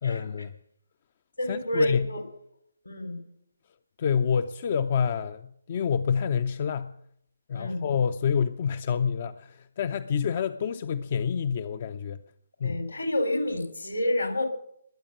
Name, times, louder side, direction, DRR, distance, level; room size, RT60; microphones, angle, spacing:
voice 1, 0.0-0.5 1.5-2.1 4.0-6.9 7.5-12.2 12.6-12.8, left 7 dB, 40° left, 0.5 m, -27 dB
voice 2, 1.4-2.2 2.9-3.2 7.5-7.9 12.6-14.5, left 1 dB, 80° left, 3.9 m, -29 dB
21.0 x 8.8 x 6.6 m
figure-of-eight pair, 140°, 0 cm